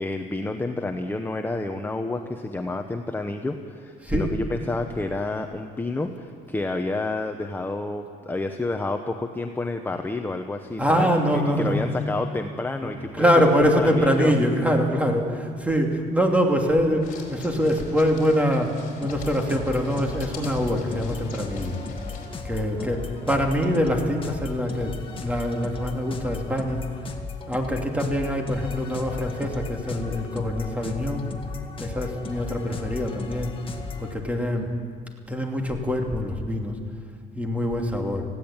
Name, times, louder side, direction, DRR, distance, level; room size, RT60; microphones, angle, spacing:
voice 1, 0.0-13.3 13.6-14.3 22.5-23.1, left 2 dB, 10° left, 5 dB, 1.0 m, -29 dB
voice 2, 4.0-4.4 10.8-11.8 12.8-21.8 22.4-24.9 25.2-26.8 27.5-31.3 31.8-33.5 34.0-34.7 35.3-36.8 37.3-38.2, equal, 10° right, 2 dB, 2.8 m, -24 dB
sound 1, 17.0-22.3, left 5 dB, 55° left, 4.7 m, -42 dB
sound 2, 19.0-34.1, left 4 dB, 30° left, 1.9 m, -36 dB
19.5 x 15.5 x 8.9 m, 2.1 s
cardioid pair, 110°, 17 cm